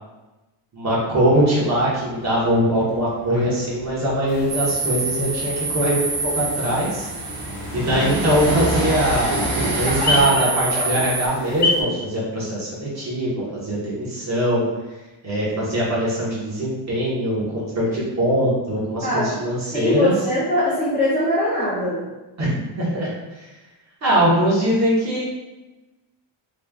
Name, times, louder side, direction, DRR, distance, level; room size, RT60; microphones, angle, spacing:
voice 1, 0.7-7.1 7.7-9.4 9.8-14.7 15.2-20.1 22.4-23.1 23.3-23.5 24.0-25.3, right 1 dB, 35° right, -7 dB, 1.1 m, -22 dB
Train, 1.1-10.2, right 1 dB, 90° right, 1.5 m, -28 dB
sound 1, 4.3-11.8, left 2 dB, 55° left, 0.8 m, -29 dB
sound 2, 4.5-11.3, right 4 dB, 60° right, 0.7 m, -28 dB
voice 2, 19.7-22.0, left 1 dB, 20° left, -9 dB, 0.5 m, -21 dB
3.2 x 2.4 x 3.5 m, 1.1 s
cardioid pair, 170°, 50 cm